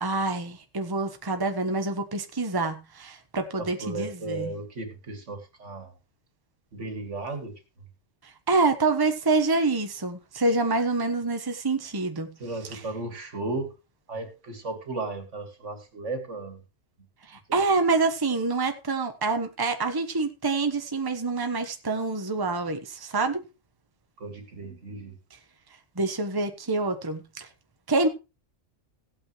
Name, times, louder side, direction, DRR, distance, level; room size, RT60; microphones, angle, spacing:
voice 1, 0.0-4.5 8.5-12.3 12.7-12.8 17.3-23.4 26.0-27.5 27.9-28.1, right 3 dB, 20° right, 1.1 m, -26 dB
voice 2, 3.6-5.9 6.7-7.5 12.4-13.7 14.1-16.6 17.5-17.6 24.2-25.2, right 3 dB, 70° right, 2.5 m, -35 dB
16.5 x 8.8 x 3.1 m
omnidirectional pair, 1.3 m